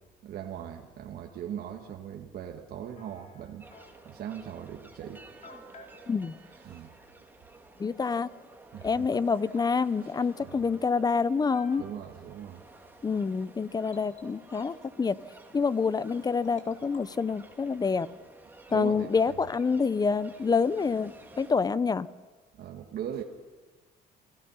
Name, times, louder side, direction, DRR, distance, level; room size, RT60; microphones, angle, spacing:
voice 1, 0.2-3.7 4.0-5.2 6.5-6.9 8.7-9.1 10.0-10.1 10.4-10.6 11.8-12.6 18.7-19.3 22.5-23.2, right 9 dB, 65° right, 2 dB, 1.7 m, -39 dB
sound 1, 3.0-4.2 4.9-5.0 5.4-6.0 8.6-8.7 9.1-9.7 10.8-10.9 11.4-12.2 13.9-14.7 16.2-17.2 18.7-19.6, left 2 dB, 45° left, 3.4 m, -54 dB
sound 2, 3.6-21.5, right 2 dB, 10° right, 2.9 m, -53 dB
voice 2, 7.8-8.3 8.8-11.8 13.0-15.2 15.5-18.1 18.7-22.1, left 5 dB, 25° left, 17 dB, 0.7 m, -27 dB
28.0 x 17.0 x 5.7 m, 1.3 s
cardioid pair, 110°, 17 cm